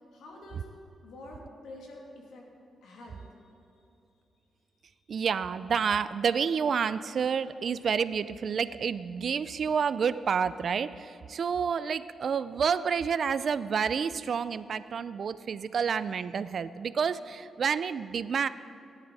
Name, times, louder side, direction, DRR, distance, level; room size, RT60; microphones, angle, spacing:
voice 1, 0.1-0.7 1.0-2.5 2.8-3.4 3.8-3.9 5.0-5.1, left 2 dB, 85° left, -1 dB, 2.7 m, -47 dB
voice 2, 5.1-18.5, right 6 dB, 50° right, 15 dB, 0.4 m, -29 dB
17.5 x 10.5 x 4.1 m, 2.7 s
cardioid pair, 135°, 0 cm